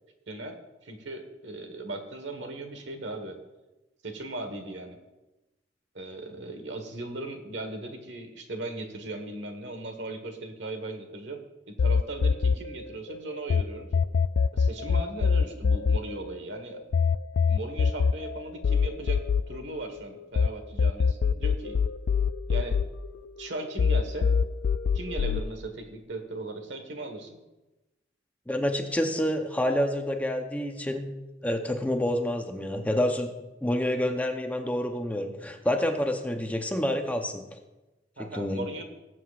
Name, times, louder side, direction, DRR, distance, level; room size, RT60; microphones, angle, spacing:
voice 1, 0.8-3.4 4.0-5.0 5.9-13.9 14.5-16.8 17.5-19.2 19.5-21.8 22.5-22.8 23.4-24.3 24.9-27.4 38.2-38.8, right 2 dB, 70° right, 5 dB, 1.5 m, -38 dB
sound 1, 11.8-13.6 13.9-20.5 20.8-23.5 23.8-25.4, left 5 dB, 75° left, 0.3 m, -24 dB
voice 2, 28.5-31.1 31.4-33.3 33.6-37.6 38.2-38.7, left 1 dB, 10° left, 4 dB, 0.8 m, -28 dB
20.5 x 7.7 x 2.5 m, 1.1 s
head